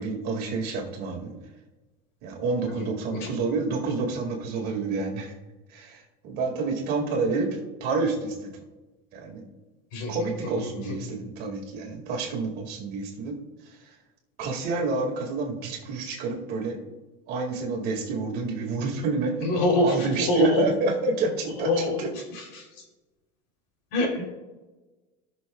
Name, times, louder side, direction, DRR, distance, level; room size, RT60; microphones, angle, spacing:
voice 1, 0.0-1.4 2.2-5.3 5.7-7.5 7.8-8.5 9.1-9.4 10.1-13.4 14.4-16.8 17.3-21.7 22.0-22.1, right 3 dB, 50° right, 1 dB, 2.1 m, -28 dB
voice 2, 2.7-3.3 9.9-10.3 10.6-11.0 19.4-20.7 21.6-22.0 22.3-22.8 23.9-24.2, left 2 dB, 70° left, 0 dB, 3.3 m, -26 dB
19.0 x 6.4 x 2.3 m, 1.2 s
cardioid pair, 165°, 20 cm